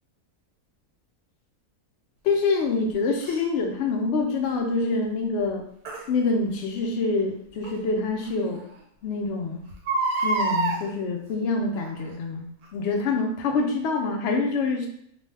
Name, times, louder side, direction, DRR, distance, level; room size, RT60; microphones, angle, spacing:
voice 1, 2.2-5.6 6.1-8.6 9.0-9.6 10.2-14.9, left 3 dB, 65° left, 2 dB, 0.7 m, -26 dB
Crying sobbing, 3.2-3.4 5.9-6.0 7.6-7.7 8.3-8.4 8.6-8.7 9.7-10.8 11.7-12.1 12.6-12.7, right 3 dB, 85° right, 1.1 m, -26 dB
2.6 x 2.2 x 3.2 m, 0.70 s
omnidirectional pair, 1.6 m